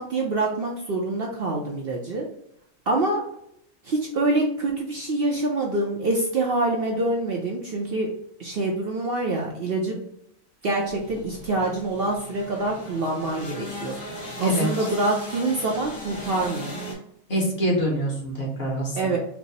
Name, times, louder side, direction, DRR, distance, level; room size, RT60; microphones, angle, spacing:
voice 1, 0.0-2.3 2.9-3.2 3.8-8.1 8.4-10.0 10.6-14.0 14.4-16.8 19.0-19.2, right 2 dB, 55° right, -1 dB, 0.7 m, -25 dB
sound 1, 10.9-16.9, left 1 dB, 80° left, 2.2 m, -38 dB
voice 2, 17.3-19.1, equal, 50° left, -1 dB, 1.3 m, -25 dB
4.6 x 2.0 x 4.0 m, 0.74 s
omnidirectional pair, 1.4 m